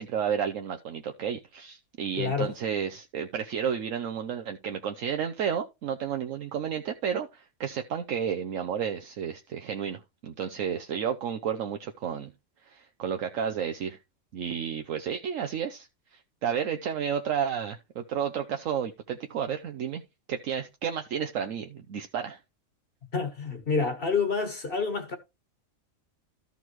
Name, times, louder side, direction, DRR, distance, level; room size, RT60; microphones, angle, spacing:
voice 1, 0.0-12.3 12.7-14.0 14.3-20.0 20.3-22.4, right 8 dB, 70° right, 1.1 m, -32 dB
voice 2, 2.1-2.5 23.1-25.2, left 5 dB, 45° left, 1.5 m, -28 dB
13.5 x 5.4 x 3.1 m
omnidirectional pair, 1.4 m